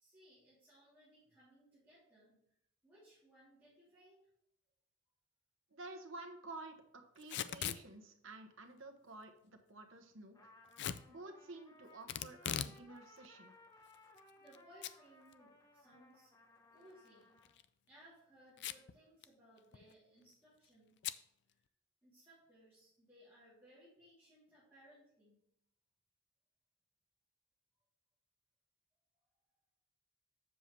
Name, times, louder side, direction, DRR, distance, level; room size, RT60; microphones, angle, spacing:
voice 1, 0.0-2.4 2.8-4.3 14.4-16.3 16.7-17.5 17.9-21.0 21.5-21.6 22.0-25.4, equal, 10° right, -10 dB, 3.1 m, -64 dB
voice 2, 5.7-10.5 11.1-13.5, right 2 dB, 85° right, 4 dB, 1.3 m, -52 dB
Packing tape duct tape / Tearing, 7.2-7.8 10.8-11.0 12.1-12.8 13.2-13.3 13.9-14.6 14.8-14.9 15.3-15.4 17.4-17.6 18.6-18.9 19.2-19.3 19.6-19.9 21.0-21.2, left 10 dB, 60° left, 0.4 m, -40 dB
Trumpet, 10.3-17.6, left 2 dB, 20° left, 0.9 m, -63 dB
7.7 x 6.8 x 3.2 m, 0.76 s
head